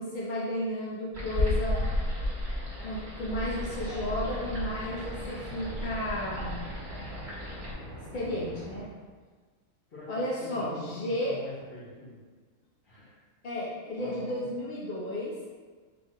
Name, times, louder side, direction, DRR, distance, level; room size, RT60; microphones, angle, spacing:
voice 1, 0.0-1.8 2.8-6.6 8.1-8.9 10.1-11.4 13.4-15.3, left 1 dB, 60° left, -5 dB, 0.5 m, -33 dB
sound 1, 1.1-7.7, left 1 dB, 35° right, 1.2 m, -33 dB
sound 2, 3.5-8.9, right 1 dB, 70° right, 1.1 m, -44 dB
voice 2, 9.9-12.1 12.8-13.2 14.0-14.5, left 1 dB, 40° left, -14 dB, 1.5 m, -44 dB
4.3 x 2.8 x 3.6 m, 1.5 s
omnidirectional pair, 1.6 m